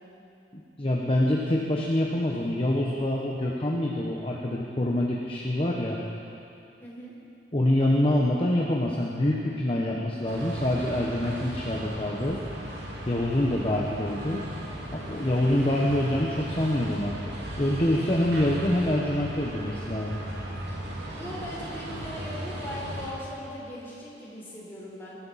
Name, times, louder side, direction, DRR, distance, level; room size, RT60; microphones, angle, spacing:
voice 1, 0.5-6.0 7.5-12.4 13.1-14.4 14.9-17.2 17.6-20.2, left 1 dB, 30° left, -2 dB, 1.1 m, -26 dB
voice 2, 6.8-7.1 21.1-25.2, equal, 15° left, -7 dB, 4.2 m, -39 dB
sound 1, 10.3-23.1, right 1 dB, 70° right, 2.4 m, -37 dB
21.5 x 13.0 x 4.2 m, 2.7 s
head